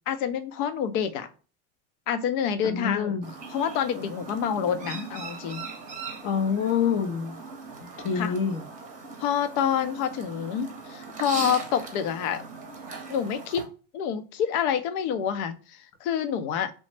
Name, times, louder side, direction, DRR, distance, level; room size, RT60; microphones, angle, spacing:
voice 1, 0.1-1.3 2.1-3.2 3.5-5.7 8.1-8.3 9.2-12.4 13.1-16.7, left 8 dB, 70° left, 0.6 m, -28 dB
voice 2, 2.6-3.2 6.2-7.4 8.0-8.6, left 7 dB, 30° left, 0.4 m, -26 dB
Chirp tweet, 3.2-13.6, right 4 dB, 15° right, 0.7 m, -40 dB
3.1 x 2.0 x 3.1 m
supercardioid pair, 120°, 46 cm